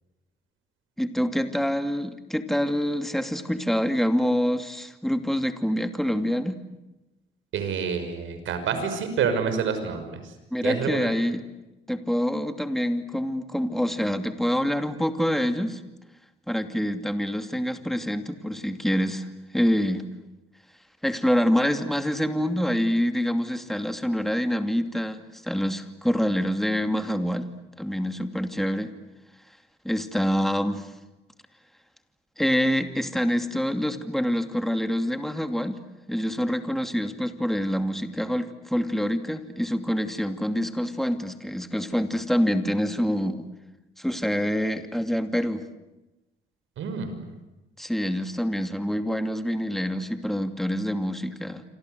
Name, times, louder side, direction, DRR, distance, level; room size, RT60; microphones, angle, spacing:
voice 1, 1.0-6.6 10.5-11.4 11.9-15.8 16.5-19.3 19.5-20.1 21.0-27.5 27.8-28.9 29.8-30.9 32.4-35.8 36.1-43.5 44.0-45.6 47.8-51.6, equal, ahead, 7 dB, 2.6 m, -26 dB
voice 2, 7.5-10.3 10.6-11.1 46.8-47.1, right 6 dB, 80° right, 8 dB, 6.0 m, -28 dB
28.0 x 26.0 x 8.1 m, 1.0 s
cardioid pair, 90°, 20 cm